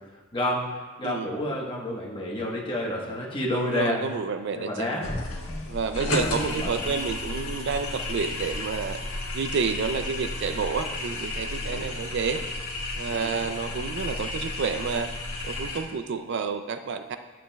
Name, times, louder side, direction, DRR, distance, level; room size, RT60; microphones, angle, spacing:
voice 1, 0.3-4.0 4.5-5.1 6.0-6.7 11.6-11.9 13.1-13.4, left 1 dB, 25° left, -3 dB, 1.2 m, -30 dB
voice 2, 3.5-4.9 5.7-9.0 9.3-12.4 13.0-15.1 15.4-17.2, right 5 dB, 55° right, 8 dB, 0.4 m, -29 dB
sound 1, 5.0-15.8, left 2 dB, 90° left, 1.3 m, -32 dB
11.0 x 7.3 x 2.3 m, 1.3 s
head